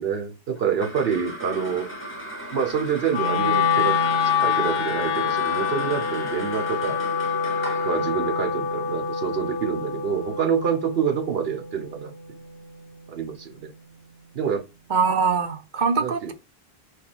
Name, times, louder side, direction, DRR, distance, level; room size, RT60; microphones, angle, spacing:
voice 1, 0.0-1.9 2.5-7.0 7.8-12.1 13.1-13.7 14.3-14.6 16.0-16.3, right 7 dB, 75° right, 1.1 m, -27 dB
sound 1, 0.6-11.2, right 1 dB, 15° left, 1.0 m, -37 dB
Wind instrument woodwind instrument, 3.1-13.3, left 6 dB, 70° left, 0.8 m, -26 dB
voice 2, 14.9-16.3, right 5 dB, 50° right, 0.9 m, -23 dB
4.5 x 2.7 x 4.1 m
omnidirectional pair, 1.0 m